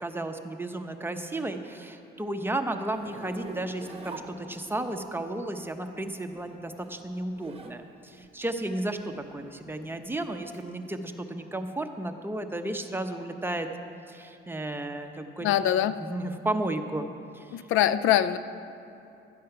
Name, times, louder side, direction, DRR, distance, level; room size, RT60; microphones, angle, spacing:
voice 1, 0.0-13.7 14.1-15.5 15.8-17.1 17.3-17.6, right 1 dB, 10° right, 5 dB, 0.8 m, -33 dB
Zipper (clothing), 2.9-5.0 6.1-7.8 8.2-10.6, right 3 dB, 30° right, 1.1 m, -44 dB
voice 2, 15.4-16.0 17.5-18.4, left 11 dB, 90° left, 14 dB, 0.4 m, -23 dB
12.5 x 8.4 x 5.8 m, 2.7 s
cardioid pair, 90°, 20 cm